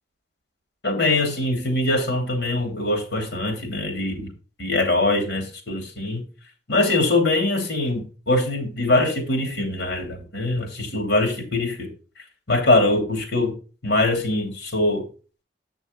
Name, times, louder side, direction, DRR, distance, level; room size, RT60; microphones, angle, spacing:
voice 1, 0.8-4.3 4.6-6.2 6.7-11.9 12.5-13.5 13.8-15.0, left 2 dB, 75° left, 3 dB, 3.1 m, -22 dB
8.8 x 6.1 x 4.0 m, 0.35 s
head